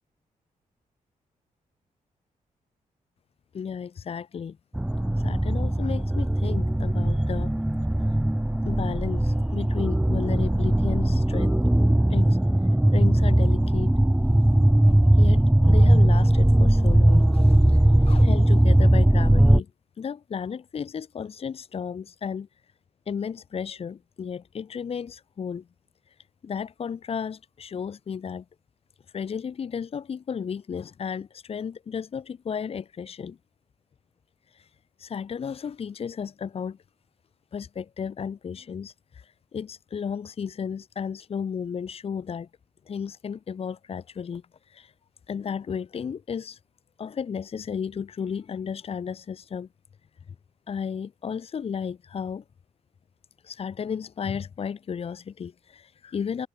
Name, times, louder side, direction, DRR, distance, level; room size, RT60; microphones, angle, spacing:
voice 1, 3.5-4.6 5.1-7.5 8.1-8.2 8.6-11.6 12.1-12.4 12.9-13.9 15.1-19.7 20.0-22.5 23.0-25.6 26.1-26.2 26.4-28.4 29.1-33.4 34.5-34.7 35.0-36.8 37.5-42.5 42.9-44.9 45.3-46.6 47.0-49.7 50.3-50.4 50.7-52.4 53.4-56.5, left 7 dB, 45° left, 1.7 m, -34 dB
sound 1, 4.7-19.6, right 1 dB, 5° right, 1.0 m, -19 dB
wide cardioid pair, 160°, 14 cm